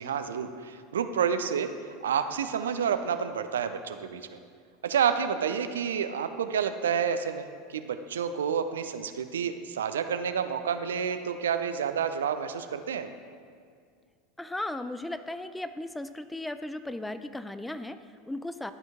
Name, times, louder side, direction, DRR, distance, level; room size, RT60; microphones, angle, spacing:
voice 1, 0.0-1.7 2.0-4.2 4.8-13.1, right 7 dB, 70° right, 9 dB, 0.3 m, -29 dB
voice 2, 14.4-18.7, left 1 dB, 5° left, 11 dB, 0.3 m, -36 dB
11.5 x 4.4 x 3.5 m, 2.1 s
figure-of-eight pair, 80°, 0 cm